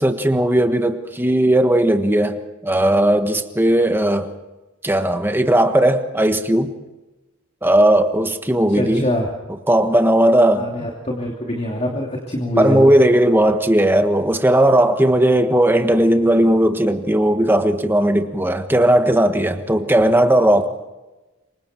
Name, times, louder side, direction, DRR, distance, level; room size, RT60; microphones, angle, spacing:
voice 1, 0.0-4.3 4.8-6.7 7.6-9.0 9.7-10.7 12.6-20.6, right 1 dB, 10° right, 1.4 m, -16 dB
voice 2, 8.7-9.3 10.5-12.9, left 1 dB, 35° left, 3.0 m, -24 dB
28.0 x 24.5 x 4.5 m
head